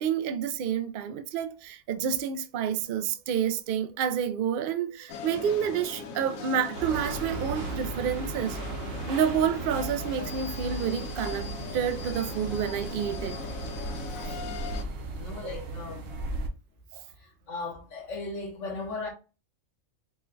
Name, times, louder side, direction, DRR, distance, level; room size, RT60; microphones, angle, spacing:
voice 1, 0.0-8.6 9.1-13.4 16.9-17.0, right 8 dB, 80° right, 0.4 m, -29 dB
sound 1, 5.1-14.8, left 6 dB, 80° left, 1.0 m, -40 dB
sound 2, 6.7-16.5, right 3 dB, 55° right, 0.8 m, -36 dB
voice 2, 14.1-14.5 15.2-16.1 17.2-19.1, left 3 dB, 60° left, 1.3 m, -37 dB
4.5 x 2.2 x 3.7 m
omnidirectional pair, 1.5 m